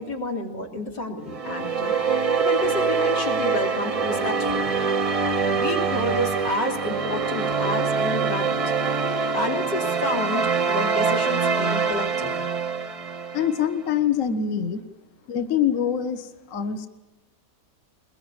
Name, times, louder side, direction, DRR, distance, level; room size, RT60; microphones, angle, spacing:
voice 1, 0.0-4.8 5.5-8.7 9.3-12.3, left 1 dB, 85° left, 1 dB, 3.8 m, -30 dB
sound 1, 1.3-13.7, right 5 dB, 35° right, 0.6 m, -24 dB
voice 2, 13.3-14.8 15.3-16.9, left 8 dB, 50° left, 10 dB, 1.4 m, -24 dB
21.5 x 21.5 x 8.9 m, 1.1 s
omnidirectional pair, 1.8 m